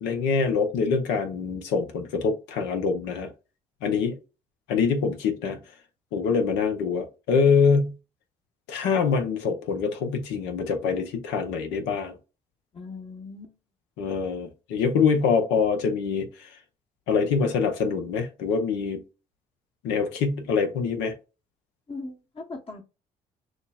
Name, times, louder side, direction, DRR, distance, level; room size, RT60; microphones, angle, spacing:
voice 1, 0.0-3.3 3.8-4.2 4.7-5.6 6.1-7.9 8.7-12.2 14.0-16.5 17.1-19.0 19.8-21.1, left 5 dB, 75° left, 0.8 m, -24 dB
voice 2, 12.7-13.6 21.9-22.8, left 3 dB, 30° left, 1.0 m, -39 dB
6.3 x 2.1 x 2.3 m
hypercardioid pair, 55°, 18 cm